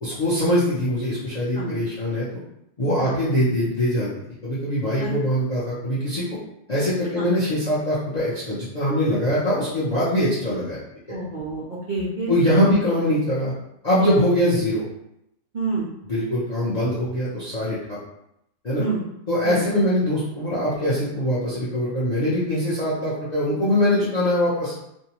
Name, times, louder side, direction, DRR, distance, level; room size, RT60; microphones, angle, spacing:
voice 1, 0.0-2.3 2.8-4.1 4.4-6.3 6.7-10.8 12.3-13.5 13.8-14.8 16.1-18.0 18.6-18.8 19.3-24.9, equal, 50° left, -8 dB, 0.5 m, -22 dB
voice 2, 11.1-12.4 12.6-12.7 14.0-14.2 15.5-15.9 18.8-19.0 19.4-19.6, right 3 dB, 85° right, -6 dB, 0.4 m, -28 dB
2.6 x 2.1 x 2.8 m, 0.80 s
omnidirectional pair, 1.6 m